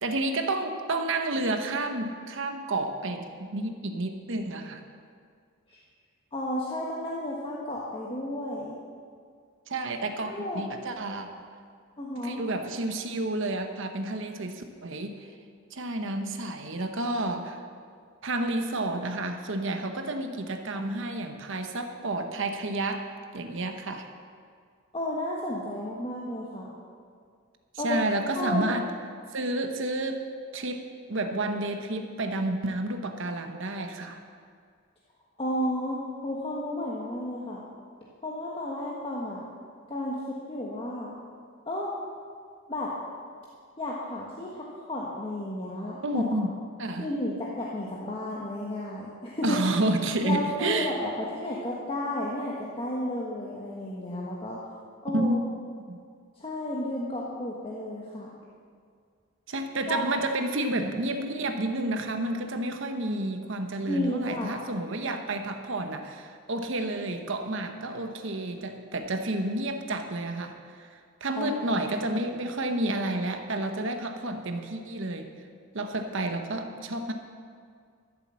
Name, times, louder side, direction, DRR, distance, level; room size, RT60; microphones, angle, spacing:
voice 1, 0.0-4.8 9.7-11.3 12.2-15.3 15.7-17.6 18.2-23.1 23.3-24.1 27.7-28.9 29.3-30.2 30.5-30.8 31.1-34.2 46.0-46.5 46.8-47.1 49.4-50.9 55.1-55.4 55.9-56.0 59.5-75.3 75.7-77.1, right 2 dB, 60° right, 6 dB, 1.0 m, -30 dB
voice 2, 6.3-8.8 10.2-10.6 12.0-12.4 24.9-26.7 27.8-28.0 28.3-28.7 35.4-37.6 38.2-39.4 39.9-41.1 41.7-41.9 42.7-42.9 43.8-46.4 47.0-49.6 50.2-54.6 55.0-55.4 56.4-58.3 59.9-60.1 63.8-64.6 71.4-71.9, left 1 dB, 25° left, -5 dB, 1.4 m, -32 dB
13.5 x 7.6 x 7.5 m, 2.1 s
head